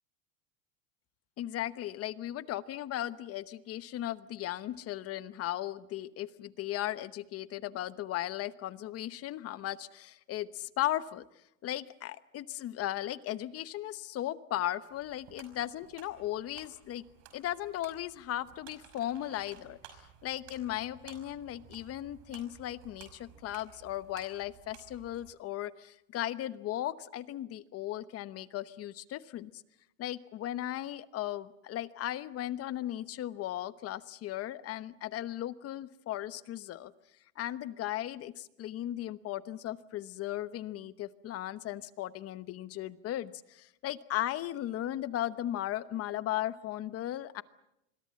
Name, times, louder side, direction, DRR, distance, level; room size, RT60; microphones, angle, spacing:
voice 1, 1.4-11.3 11.6-17.0 17.3-19.8 20.2-29.5 30.0-36.9 37.4-47.4, left 13 dB, 35° left, 15 dB, 1.0 m, -36 dB
sound 1, 14.9-25.3, right 9 dB, 60° right, 5.6 m, -56 dB
26.5 x 22.5 x 7.6 m, 0.86 s
supercardioid pair, 145°, 40 cm